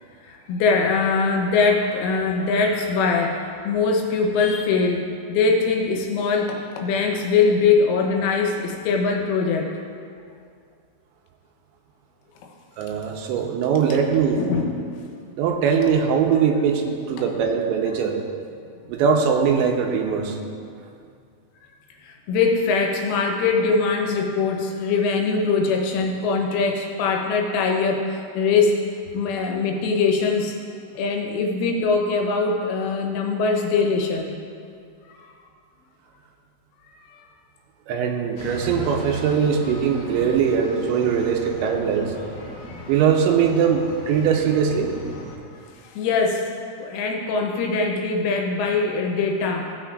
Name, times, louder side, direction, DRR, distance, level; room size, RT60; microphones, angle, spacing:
voice 1, 0.2-9.8 14.3-14.9 22.0-28.8 29.1-30.6 31.0-34.4 35.1-35.3 37.1-37.3 45.9-46.4 46.8-49.7, left 4 dB, 90° left, 1 dB, 3.5 m, -22 dB
voice 2, 12.8-14.4 15.4-18.2 18.9-20.4 37.9-42.1 42.9-44.9, right 7 dB, 80° right, 2 dB, 2.8 m, -21 dB
sound 1, 38.4-45.4, left 1 dB, 70° left, 2.1 m, -37 dB
16.0 x 7.9 x 2.5 m, 2.3 s
omnidirectional pair, 5.5 m